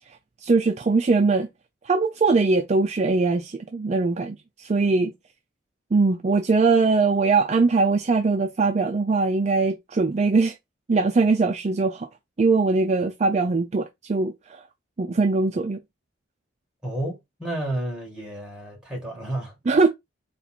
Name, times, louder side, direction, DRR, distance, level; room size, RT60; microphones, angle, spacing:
voice 1, 0.4-1.5 1.9-5.1 5.9-10.6 10.9-12.1 12.4-14.6 15.0-15.8 19.7-19.9, right 3 dB, 35° right, 0.4 m, -21 dB
voice 2, 16.8-19.5, right 1 dB, 5° right, 2.0 m, -31 dB
4.2 x 2.4 x 4.3 m
head